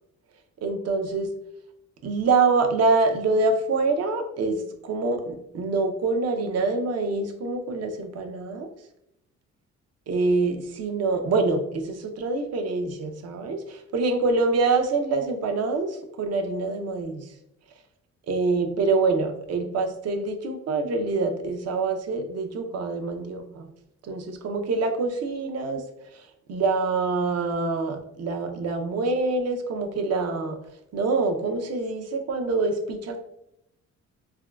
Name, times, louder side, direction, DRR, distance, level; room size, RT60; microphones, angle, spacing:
voice 1, 0.6-1.3 2.0-8.7 10.1-17.2 18.3-23.7 24.0-25.8 26.5-30.6 30.9-33.2, right 3 dB, 55° right, 6 dB, 0.5 m, -25 dB
3.5 x 2.2 x 2.2 m, 0.80 s
cardioid pair, 90°, 30 cm